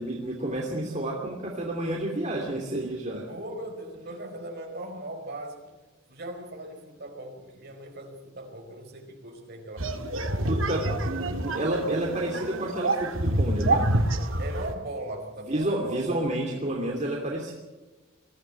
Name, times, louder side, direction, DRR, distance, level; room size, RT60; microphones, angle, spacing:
voice 1, 0.0-3.2 10.4-10.8 11.4-13.8 15.5-17.5, right 1 dB, 35° right, -1 dB, 2.8 m, -30 dB
voice 2, 3.3-5.8 6.1-10.2 10.6-10.9 14.2-16.2, right 1 dB, 50° right, 3 dB, 4.7 m, -39 dB
sound 1, 9.8-14.7, right 1 dB, 70° right, 1.7 m, -27 dB
21.5 x 15.0 x 8.8 m, 1.2 s
head